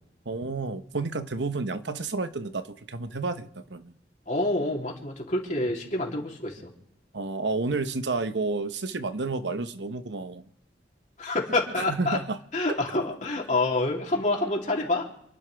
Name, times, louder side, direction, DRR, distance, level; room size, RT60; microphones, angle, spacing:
voice 1, 0.2-3.9 7.1-10.4 11.8-12.4, right 3 dB, 75° right, 10 dB, 1.0 m, -30 dB
voice 2, 4.3-6.6 11.2-12.2 12.5-15.1, left 2 dB, 45° left, -1 dB, 3.2 m, -27 dB
29.0 x 11.5 x 3.5 m, 0.77 s
head